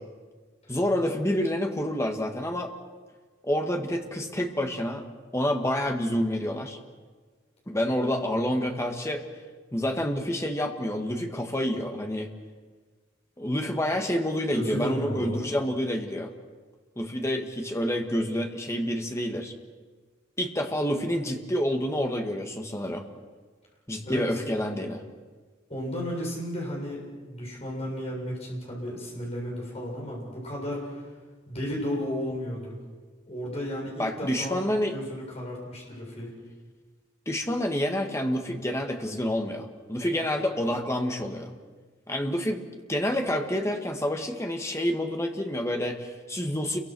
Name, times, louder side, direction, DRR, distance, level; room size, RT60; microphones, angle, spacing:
voice 1, 0.7-2.7 3.4-5.1 5.3-6.8 7.7-9.2 9.7-12.3 13.4-16.3 17.0-19.5 20.4-23.1 23.9-25.0 34.0-35.0 37.3-41.5 42.1-42.6 42.9-46.8, equal, 15° left, 3 dB, 1.9 m, -28 dB
voice 2, 14.5-15.4 24.0-24.4 25.7-31.1 31.5-32.8 33.3-34.6 34.9-36.3, equal, 35° left, -2 dB, 7.2 m, -33 dB
29.0 x 23.5 x 6.3 m, 1.4 s
head